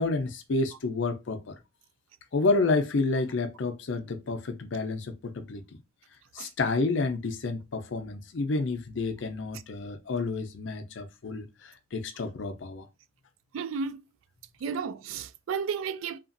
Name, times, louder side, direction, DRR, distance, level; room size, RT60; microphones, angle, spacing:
voice 1, 0.0-1.5 2.3-5.6 6.3-12.9, left 3 dB, 65° left, 0.5 m, -29 dB
voice 2, 13.5-14.0 14.6-16.2, right 6 dB, 80° right, 0.3 m, -33 dB
2.9 x 2.4 x 2.5 m
head